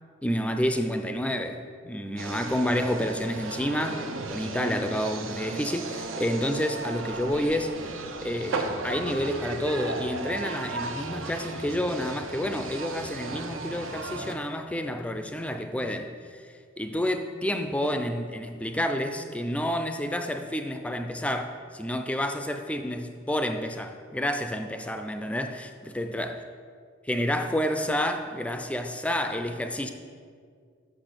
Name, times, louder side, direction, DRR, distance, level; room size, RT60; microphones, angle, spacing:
voice 1, 0.2-7.9 8.2-16.5 16.8-26.3 27.1-29.9, equal, 5° left, 7 dB, 0.4 m, -29 dB
sound 1, 2.2-14.3, right 3 dB, 85° right, 0.7 m, -35 dB
6.1 x 6.1 x 6.6 m, 2.1 s
head